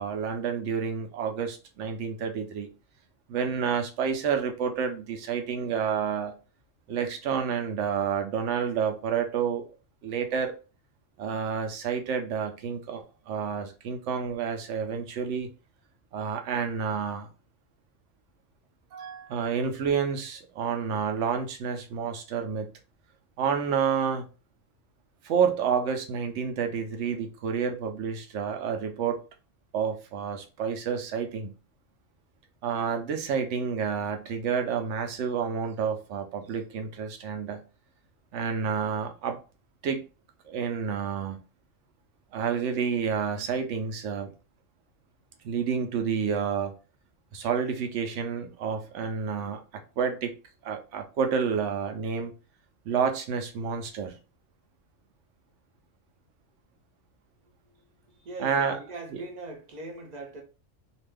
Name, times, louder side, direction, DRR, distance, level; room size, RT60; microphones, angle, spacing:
voice 1, 0.0-2.7 3.3-6.3 6.9-9.6 10.0-10.5 11.2-15.5 16.1-17.3 18.9-22.7 23.4-24.3 25.2-29.2 29.7-31.5 32.6-37.6 38.3-39.4 39.8-40.0 40.4-41.4 42.3-44.3 45.4-46.7 47.3-49.6 50.0-50.3 50.6-52.3 52.8-54.1 58.4-58.8 59.1-59.2, right 6 dB, 70° right, 0.9 m, -29 dB
voice 2, 58.2-60.4, right 2 dB, 40° right, 0.7 m, -40 dB
2.6 x 2.4 x 3.3 m
omnidirectional pair, 1.3 m